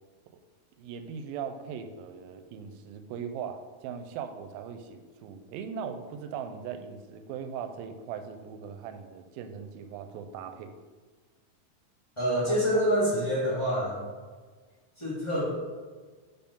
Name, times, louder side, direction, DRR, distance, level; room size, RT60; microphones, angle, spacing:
voice 1, 0.8-10.7 12.5-12.9, right 7 dB, 85° right, 8 dB, 2.3 m, -39 dB
voice 2, 12.2-14.0 15.0-15.5, equal, 25° left, -9 dB, 0.6 m, -26 dB
5.3 x 4.6 x 5.2 m, 1.4 s
omnidirectional pair, 4.2 m